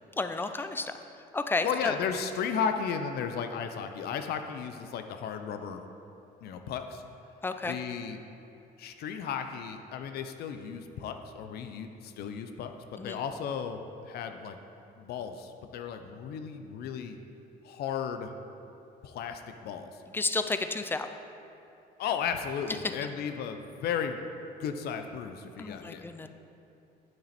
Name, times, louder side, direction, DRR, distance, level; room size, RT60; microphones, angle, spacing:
voice 1, 0.2-0.9 1.3-1.9 7.4-7.8 13.0-13.2 20.1-21.1 25.6-26.3, left 3 dB, 15° left, 8 dB, 0.4 m, -31 dB
voice 2, 1.6-5.8 6.4-7.0 7.6-8.2 8.8-14.6 15.0-17.2 17.6-18.3 19.0-19.9 22.0-24.2 24.6-26.3, left 7 dB, 70° left, 7 dB, 0.6 m, -35 dB
8.7 x 6.3 x 4.2 m, 2.7 s
cardioid pair, 110°, 17 cm